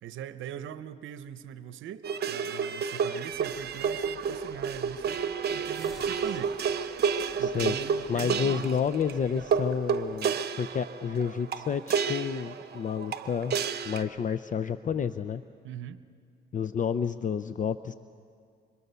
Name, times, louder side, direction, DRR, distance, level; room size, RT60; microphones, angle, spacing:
voice 1, 0.0-6.6 7.4-8.7 15.6-16.0, right 10 dB, 80° right, 12 dB, 0.8 m, -41 dB
sound 1, 2.0-14.0, right 6 dB, 55° right, 1.0 m, -31 dB
sound 2, 3.3-10.2, right 2 dB, ahead, 2.7 m, -52 dB
voice 2, 7.4-7.8 8.1-13.6 13.8-15.4 16.5-17.9, left 7 dB, 40° left, 12 dB, 0.6 m, -30 dB
26.5 x 24.5 x 6.9 m, 2.3 s
cardioid pair, 90°, 20 cm